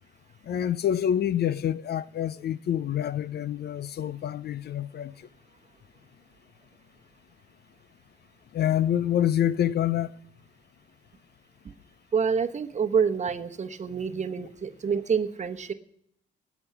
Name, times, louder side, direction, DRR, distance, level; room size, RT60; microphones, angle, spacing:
voice 1, 0.4-5.3 8.5-10.2, left 10 dB, 55° left, 0.5 m, -27 dB
voice 2, 12.1-15.7, right 6 dB, 35° right, 1.0 m, -27 dB
18.5 x 7.1 x 5.8 m
cardioid pair, 90°, 20 cm